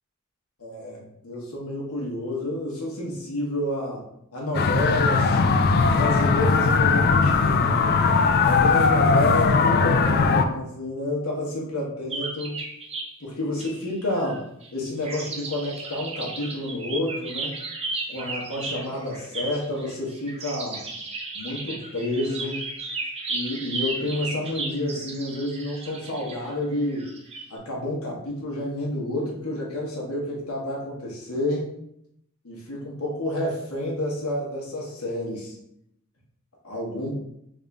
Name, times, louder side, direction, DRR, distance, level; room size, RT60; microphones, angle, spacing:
voice 1, 0.6-4.0 4.3-5.4 5.8-8.0 8.4-12.6 13.2-14.4 14.7-17.5 18.1-20.8 21.3-22.6 23.3-27.1 27.5-31.7 32.4-35.5 36.6-37.1, left 1 dB, 80° left, -3 dB, 1.1 m, -29 dB
sound 1, 4.5-10.4, left 4 dB, 45° left, 0.3 m, -19 dB
sound 2, 12.1-13.1 13.5-14.7 15.0-27.5, right 3 dB, 30° right, 0.6 m, -35 dB
3.4 x 2.6 x 3.4 m, 0.76 s
head